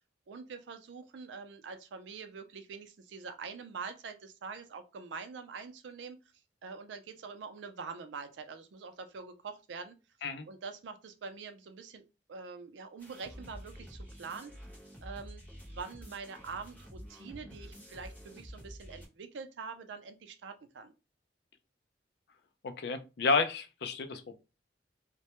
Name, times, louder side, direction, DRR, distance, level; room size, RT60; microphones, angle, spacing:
voice 1, 0.3-6.2 6.6-10.0 10.5-12.0 12.3-14.5 15.0-15.4 15.7-20.9, right 5 dB, 85° right, 0.4 m, -44 dB
sound 1, 13.0-19.1, equal, 10° left, 0.8 m, -49 dB
voice 2, 22.6-24.4, left 4 dB, 65° left, 0.4 m, -31 dB
2.1 x 2.1 x 2.9 m
head